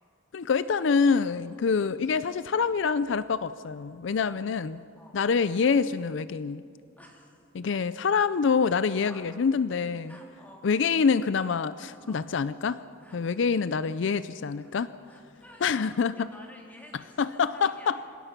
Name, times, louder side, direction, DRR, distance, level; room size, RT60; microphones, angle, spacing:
voice 1, 0.3-4.8 5.1-6.6 7.5-10.1 10.6-12.8 13.1-14.9 15.6-16.3 17.2-18.0, left 5 dB, 70° left, 15 dB, 0.4 m, -26 dB
voice 2, 4.2-5.2 7.0-7.4 9.0-9.2 10.1-10.7 11.9-12.3 13.0-13.2 14.6-14.8 15.1-17.9, left 1 dB, 10° left, -2 dB, 3.6 m, -52 dB
26.5 x 17.5 x 5.9 m, 2.5 s
head